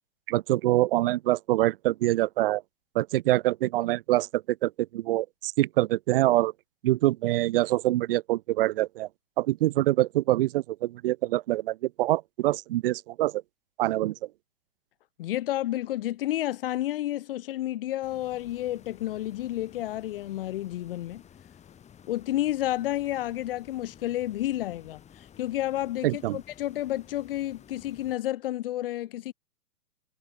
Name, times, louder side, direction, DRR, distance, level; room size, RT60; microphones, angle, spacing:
voice 1, 0.3-2.6 2.9-6.5 6.8-9.1 9.4-13.4 13.8-14.1 26.0-26.4, right 16 dB, 35° right, 0.9 m, -25 dB
voice 2, 15.2-21.2 22.1-25.0 25.4-29.3, left 14 dB, 35° left, 0.8 m, -30 dB
sound 1, 18.0-28.2, left 8 dB, 15° left, 4.1 m, -53 dB
hypercardioid pair, 145°, 50 cm